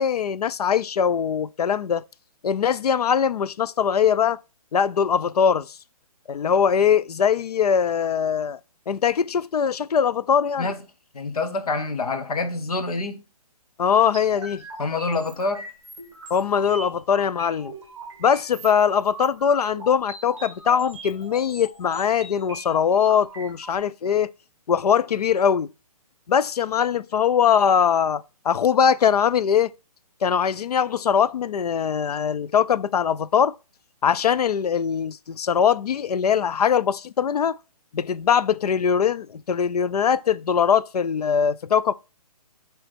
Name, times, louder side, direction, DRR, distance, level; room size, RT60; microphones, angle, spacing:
voice 1, 0.0-2.0 2.4-4.4 4.7-5.7 6.3-8.6 8.9-10.7 13.8-14.6 16.3-17.7 18.2-24.3 24.7-25.7 26.3-29.7 30.2-33.5 34.0-37.6 37.9-41.9, left 7 dB, 90° left, 0.5 m, -21 dB
voice 2, 11.1-13.2 14.8-15.7, left 3 dB, 70° left, 1.2 m, -26 dB
sound 1, 14.1-23.7, right 2 dB, 10° right, 2.1 m, -41 dB
7.8 x 3.5 x 4.3 m
hypercardioid pair, 170°, 19 cm